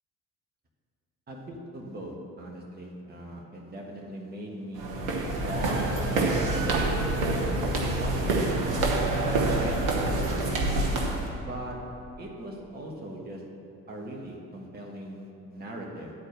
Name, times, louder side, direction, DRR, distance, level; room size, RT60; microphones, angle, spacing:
voice 1, 1.3-5.0 5.4-8.6 9.3-10.5 11.4-13.5 13.9-16.1, right 1 dB, 20° right, -1 dB, 1.4 m, -40 dB
sound 1, 4.7-11.3, right 2 dB, 70° right, 1.3 m, -26 dB
11.0 x 4.4 x 6.4 m, 2.8 s
figure-of-eight pair, 50°, 43 cm